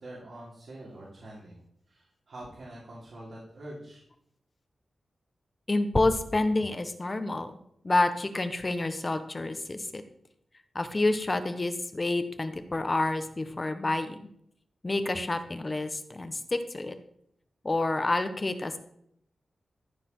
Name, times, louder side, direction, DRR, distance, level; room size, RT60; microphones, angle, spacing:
voice 1, 0.0-1.6 1.9-4.0, right 1 dB, 70° right, -6 dB, 3.3 m, -45 dB
voice 2, 5.7-7.5 7.8-10.0 10.7-14.2 14.8-16.9 17.6-18.8, left 2 dB, 30° left, 9 dB, 1.0 m, -28 dB
14.0 x 4.9 x 6.0 m, 0.71 s
wide cardioid pair, 110°, 0 cm